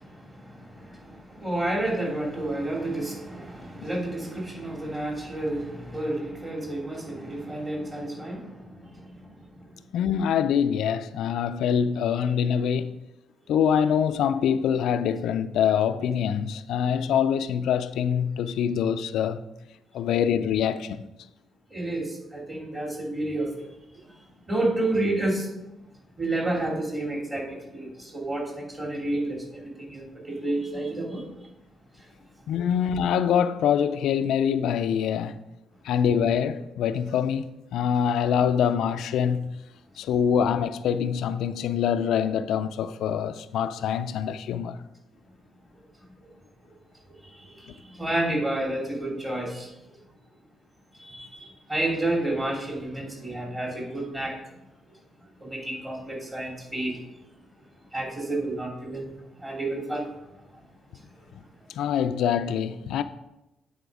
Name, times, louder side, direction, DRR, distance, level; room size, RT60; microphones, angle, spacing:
voice 1, 0.0-9.8 21.7-23.7 24.0-24.1 24.5-25.5 26.2-31.3 32.0-32.1 46.6-46.8 47.2-49.7 51.0-54.4 55.4-57.0 57.9-59.1 59.4-60.1 60.5-60.6, right 1 dB, 20° right, 2.9 m, -30 dB
voice 2, 9.9-12.9 13.5-19.4 19.9-21.1 32.5-35.4 35.8-39.5 40.0-44.8 61.7-63.0, left 8 dB, 80° left, 0.4 m, -25 dB
9.2 x 4.2 x 4.9 m
cardioid pair, 90°, 0 cm